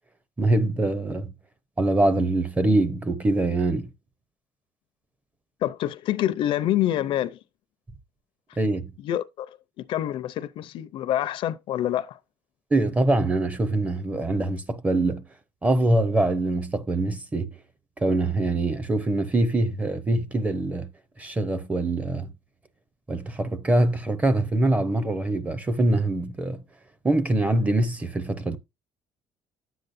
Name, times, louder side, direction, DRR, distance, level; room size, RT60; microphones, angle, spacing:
voice 1, 0.4-1.3 1.8-3.9 8.6-8.9 12.7-15.2 15.6-17.5 18.0-20.9 21.2-22.3 23.1-26.6 27.0-28.6, right 2 dB, 15° right, 0.6 m, -24 dB
voice 2, 5.6-7.4 9.0-12.2, left 12 dB, 50° left, 0.6 m, -27 dB
10.5 x 7.8 x 2.6 m
cardioid pair, 170°, 11 cm